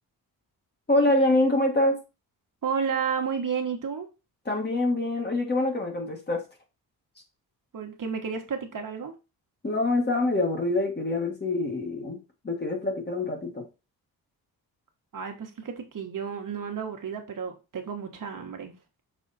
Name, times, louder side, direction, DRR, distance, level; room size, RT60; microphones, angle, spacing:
voice 1, 0.9-2.0 4.4-6.4 9.6-12.2 12.4-13.6, left 2 dB, 25° left, 2 dB, 1.6 m, -25 dB
voice 2, 2.6-4.1 7.7-9.1 15.1-18.7, right 6 dB, 55° right, 4 dB, 1.4 m, -31 dB
6.2 x 4.1 x 4.1 m, 0.28 s
wide cardioid pair, 155°, 37 cm